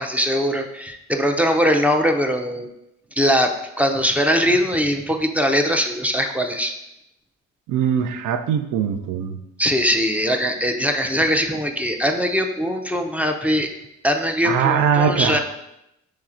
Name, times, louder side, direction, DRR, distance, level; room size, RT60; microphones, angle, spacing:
voice 1, 0.0-2.7 3.2-6.7 9.6-13.7 14.0-15.4, equal, 5° right, 4 dB, 0.4 m, -21 dB
voice 2, 7.7-9.4 14.4-15.4, right 7 dB, 80° right, 7 dB, 0.5 m, -21 dB
5.6 x 3.1 x 2.4 m, 0.85 s
cardioid pair, 90°, 30 cm